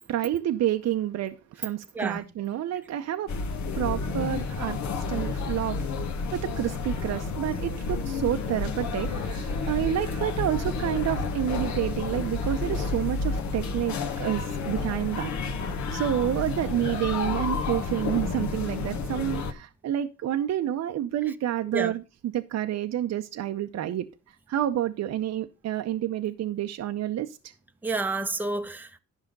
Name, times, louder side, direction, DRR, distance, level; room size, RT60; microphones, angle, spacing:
voice 1, 0.1-3.3 3.7-5.9 6.3-15.3 15.9-27.4, right 12 dB, 60° right, 0.7 m, -29 dB
sound 1, 3.3-19.5, left 4 dB, 65° left, 1.3 m, -30 dB
voice 2, 27.8-29.0, right 2 dB, 5° right, 0.7 m, -29 dB
10.5 x 5.7 x 5.2 m
cardioid pair, 90°, 30 cm